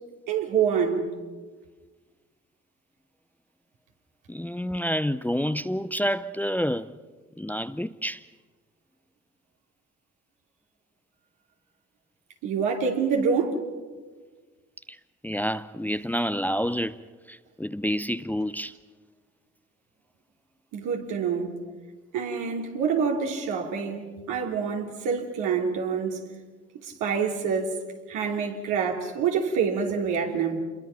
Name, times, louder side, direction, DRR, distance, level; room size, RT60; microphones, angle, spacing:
voice 1, 0.3-1.1 12.4-13.6 20.7-21.6 22.1-26.2 26.8-27.7 28.1-30.6, right 6 dB, 75° right, 3.1 m, -26 dB
voice 2, 4.3-7.0 7.4-8.2 14.9-15.0 15.2-17.0 17.3-18.7, equal, 5° left, 0.7 m, -28 dB
27.5 x 22.5 x 5.8 m
hypercardioid pair, 55°, 32 cm